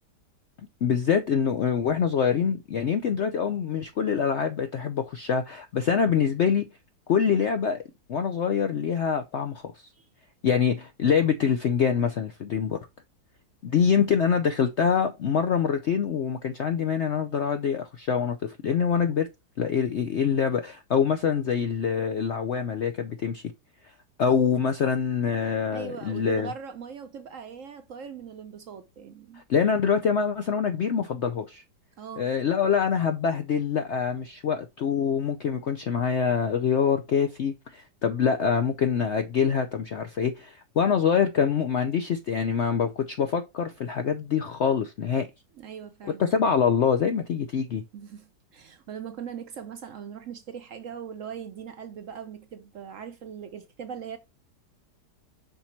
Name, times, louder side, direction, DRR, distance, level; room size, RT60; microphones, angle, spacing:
voice 1, 0.8-6.7 7.1-7.8 8.1-9.9 10.4-12.8 13.6-19.3 19.6-23.4 24.2-26.5 29.3-31.6 32.2-45.3 46.2-47.8, left 7 dB, 65° left, 0.6 m, -25 dB
voice 2, 25.7-29.4 32.0-32.3 45.6-46.3 47.9-54.2, right 7 dB, 60° right, 0.9 m, -40 dB
5.7 x 4.2 x 4.4 m
omnidirectional pair, 1.8 m